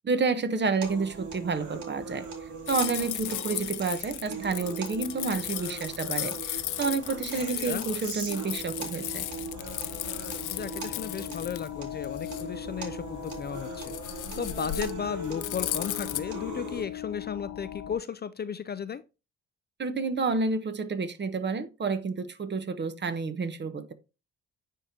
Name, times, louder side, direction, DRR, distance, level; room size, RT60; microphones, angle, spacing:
voice 1, 0.0-2.3 2.7-9.3 19.8-23.9, right 4 dB, 35° right, 1.0 m, -30 dB
sound 1, 0.8-16.8, right 3 dB, 75° right, 2.3 m, -40 dB
sound 2, 2.7-16.2, left 14 dB, 80° left, 0.7 m, -36 dB
sound 3, 9.1-18.0, left 11 dB, 50° left, 0.9 m, -41 dB
voice 2, 10.5-19.0, left 7 dB, 35° left, 0.4 m, -35 dB
9.7 x 3.7 x 2.8 m
cardioid pair, 90°, 30 cm